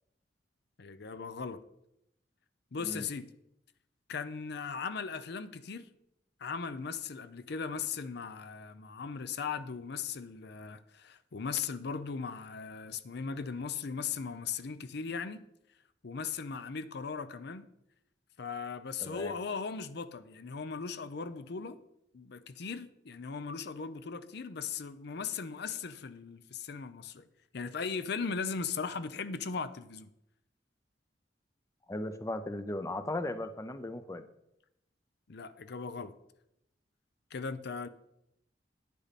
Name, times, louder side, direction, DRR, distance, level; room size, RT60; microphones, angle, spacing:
voice 1, 0.8-1.6 2.7-3.3 4.1-5.9 6.4-15.4 16.0-17.7 18.4-21.8 22.1-27.3 27.5-30.1 35.3-36.1 37.3-37.9, left 5 dB, 65° left, 0.6 m, -38 dB
voice 2, 19.0-19.3 31.9-34.2, left 1 dB, 15° left, 0.6 m, -37 dB
10.0 x 8.4 x 4.1 m
head